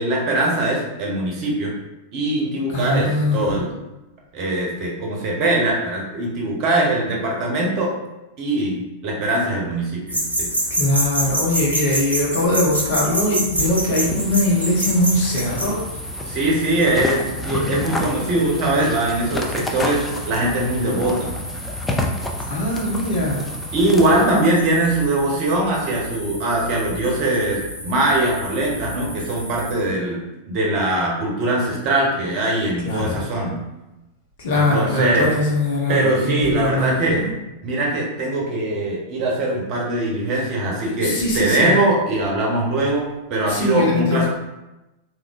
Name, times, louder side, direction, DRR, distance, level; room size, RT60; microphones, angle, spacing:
voice 1, 0.0-1.7 2.1-3.7 4.3-7.9 8.4-10.5 16.3-21.4 23.7-30.2 30.5-33.6 34.5-35.3 35.9-37.2 37.6-43.0 43.3-44.3, right 1 dB, 40° right, -2 dB, 1.0 m, -21 dB
voice 2, 2.7-3.6 10.7-15.8 22.5-23.5 24.2-24.5 32.8-33.2 34.4-37.3 41.0-41.7 43.5-44.3, left 1 dB, 55° left, -2 dB, 1.0 m, -21 dB
sound 1, 10.1-29.8, right 1 dB, 85° left, 1.0 m, -29 dB
sound 2, 13.5-24.3, left 1 dB, 15° left, 0.4 m, -30 dB
3.6 x 3.1 x 2.5 m, 0.98 s
figure-of-eight pair, 90°, 0 cm